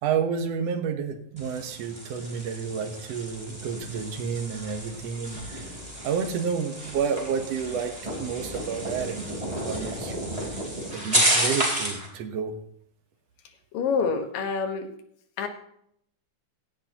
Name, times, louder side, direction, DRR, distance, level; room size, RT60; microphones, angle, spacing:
voice 1, 0.0-5.7 6.0-7.9 8.2-9.3 9.7-10.5 10.9-12.5, right 6 dB, 60° right, 6 dB, 2.0 m, -30 dB
sound 1, 1.4-12.1, right 1 dB, 10° right, 3.7 m, -31 dB
voice 2, 13.7-14.9 15.4-15.5, left 5 dB, 85° left, 6 dB, 3.1 m, -26 dB
17.0 x 13.0 x 3.0 m, 0.68 s
omnidirectional pair, 3.9 m